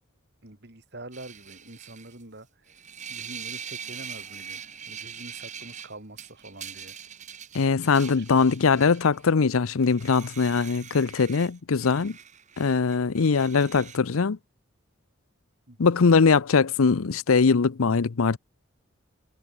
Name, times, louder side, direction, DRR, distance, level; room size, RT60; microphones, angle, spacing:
voice 1, 0.4-2.5 3.1-6.9 8.2-8.3 15.7-16.0, right 2 dB, 50° right, 3.0 m, -45 dB
sound 1, 1.1-2.2 2.7-9.3 9.8-14.0, right 8 dB, 35° right, 2.9 m, -42 dB
voice 2, 7.5-12.2 12.6-14.4 15.8-18.4, left 5 dB, 80° left, 0.6 m, -21 dB
head